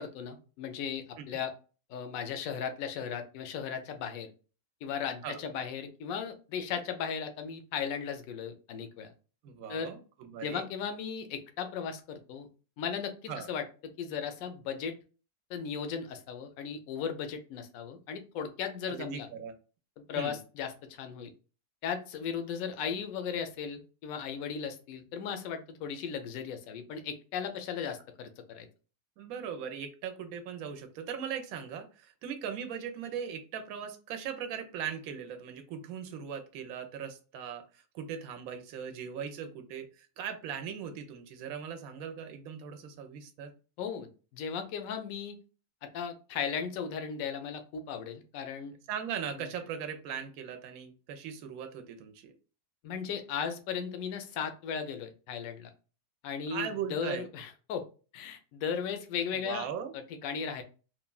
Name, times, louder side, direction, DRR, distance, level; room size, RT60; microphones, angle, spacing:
voice 1, 0.0-1.5 1.9-4.3 4.8-9.1 9.7-9.9 10.4-12.5 12.8-13.6 14.0-14.9 15.5-19.3 20.1-21.3 21.8-28.7 43.8-45.4 45.8-48.7 49.4-49.5 52.8-55.7 56.2-57.9 58.1-59.7 59.9-60.6, left 7 dB, 70° left, 7 dB, 0.9 m, -36 dB
voice 2, 9.4-10.7 13.3-13.5 18.9-19.5 20.2-20.4 29.2-43.5 48.9-52.3 56.5-57.3 59.4-59.9, right 8 dB, 70° right, 7 dB, 1.0 m, -39 dB
3.2 x 2.1 x 2.3 m, 0.35 s
omnidirectional pair, 1.7 m